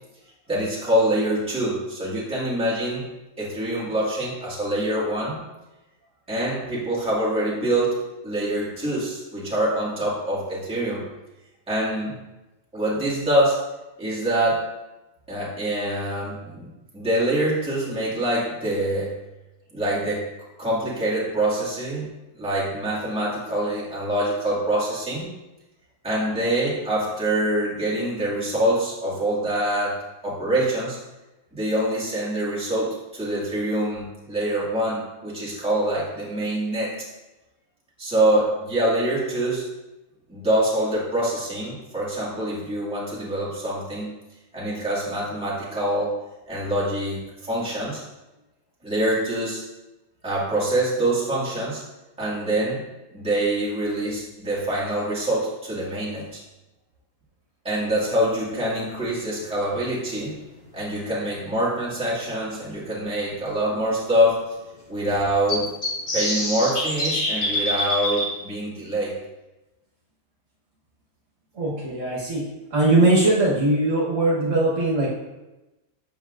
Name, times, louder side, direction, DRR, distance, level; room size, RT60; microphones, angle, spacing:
voice 1, 0.5-3.0 3.4-5.4 6.3-8.0 8.2-11.0 11.7-12.1 12.7-13.6 14.0-14.6 15.3-19.1 19.7-20.2 20.6-22.1 22.4-25.3 26.0-30.0 30.2-31.0 31.5-36.9 38.0-39.6 40.3-44.1 44.5-46.1 46.5-48.0 48.8-49.6 50.2-51.8 52.2-52.8 53.1-56.4 57.6-60.3 60.7-64.4 64.9-65.7 66.1-69.1, right 1 dB, 5° right, -9 dB, 1.8 m, -25 dB
sound 1, 59.9-60.0 62.0-62.1 62.6-62.7 62.9-63.0 65.5-68.3, left 1 dB, 40° left, 1.6 m, -25 dB
voice 2, 71.5-72.4 72.7-75.1, right 2 dB, 55° right, -6 dB, 1.6 m, -20 dB
7.9 x 5.8 x 2.5 m, 1.0 s
omnidirectional pair, 1.6 m